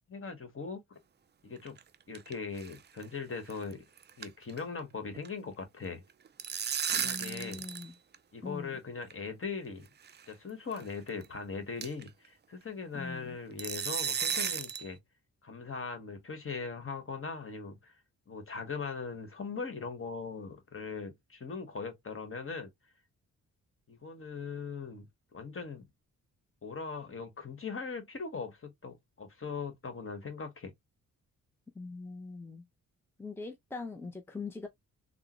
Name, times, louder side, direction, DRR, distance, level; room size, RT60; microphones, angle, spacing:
voice 1, 0.1-1.0 1.4-1.8 2.1-3.8 4.2-6.0 6.9-7.7 8.3-9.9 10.3-15.0 15.4-18.0 18.3-22.7 23.9-25.9 26.6-30.7, left 5 dB, 40° left, 1.3 m, -40 dB
sound 1, 1.6-2.3 2.6-2.8 3.0-3.1 3.5-3.7 4.0-4.8 5.0-5.3 6.1-7.9 8.1-8.2 9.1-9.2 10.1-10.2 10.7-10.8 11.2-11.3 11.8-12.1 13.6-14.9, right 7 dB, 30° right, 0.4 m, -34 dB
voice 2, 7.0-7.9 8.4-8.8 12.9-13.4 31.7-32.6 33.2-34.7, left 3 dB, 5° left, 0.6 m, -42 dB
3.6 x 2.1 x 3.0 m
cardioid pair, 65°, 34 cm